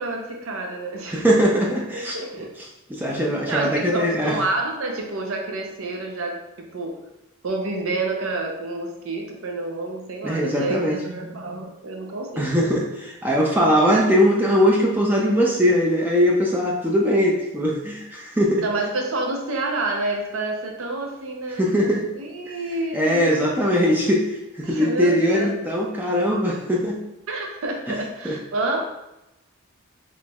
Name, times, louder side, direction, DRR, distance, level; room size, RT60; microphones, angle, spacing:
voice 1, 0.0-1.3 1.9-2.5 3.5-7.0 7.4-12.8 18.6-23.5 23.8-24.0 24.6-25.5 27.3-28.8, right 2 dB, 75° right, 2 dB, 0.6 m, -29 dB
voice 2, 1.1-2.2 2.9-4.4 10.2-11.0 12.4-18.6 21.6-22.1 22.9-27.0 27.9-28.0 28.2-28.3, equal, 10° right, -2 dB, 0.4 m, -20 dB
4.3 x 3.1 x 2.3 m, 0.92 s
head